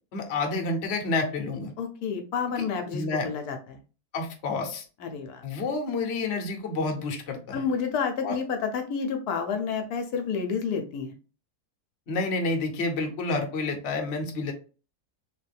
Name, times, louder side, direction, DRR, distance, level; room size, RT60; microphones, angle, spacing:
voice 1, 0.1-1.7 2.6-2.7 2.9-3.3 4.1-4.8 5.4-7.7 8.2-8.4 12.1-14.5, left 3 dB, 50° left, 3 dB, 0.9 m, -29 dB
voice 2, 1.8-3.8 5.0-5.4 7.5-11.1, left 6 dB, 75° left, 5 dB, 1.1 m, -30 dB
3.3 x 3.0 x 3.3 m, 0.35 s
omnidirectional pair, 1.7 m